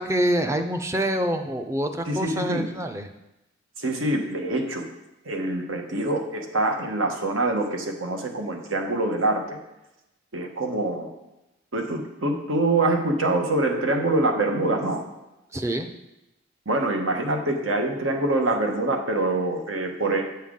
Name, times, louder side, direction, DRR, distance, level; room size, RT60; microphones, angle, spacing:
voice 1, 0.0-3.1 15.5-15.9, right 1 dB, 15° right, 6 dB, 0.4 m, -26 dB
voice 2, 2.1-2.7 3.8-4.8 5.2-9.6 10.3-11.1 11.7-15.0 16.7-20.4, right 2 dB, 90° right, 3 dB, 1.1 m, -25 dB
9.0 x 5.6 x 3.7 m, 0.95 s
head